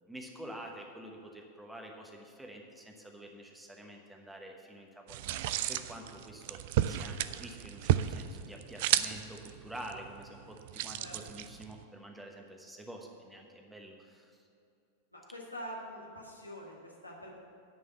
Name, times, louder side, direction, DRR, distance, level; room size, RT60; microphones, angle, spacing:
voice 1, 0.0-5.4 5.7-6.6 6.9-14.4, right 1 dB, 5° right, 2 dB, 1.2 m, -48 dB
sound 1, 5.1-11.8, right 12 dB, 50° right, 0.4 m, -33 dB
voice 2, 15.1-17.4, equal, 85° left, -2 dB, 1.8 m, -45 dB
9.9 x 5.4 x 8.1 m, 2.5 s
figure-of-eight pair, 90°, 0 cm